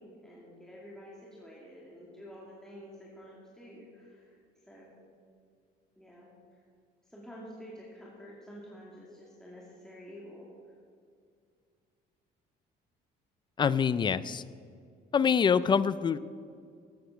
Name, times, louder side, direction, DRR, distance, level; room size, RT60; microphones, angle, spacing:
voice 1, 0.0-4.9 6.0-6.6 7.0-10.7, equal, 5° left, -6 dB, 2.4 m, -49 dB
voice 2, 13.6-14.4 15.1-16.2, left 6 dB, 25° left, 16 dB, 0.4 m, -25 dB
14.5 x 8.3 x 5.8 m, 2.2 s
cardioid pair, 130°, 17 cm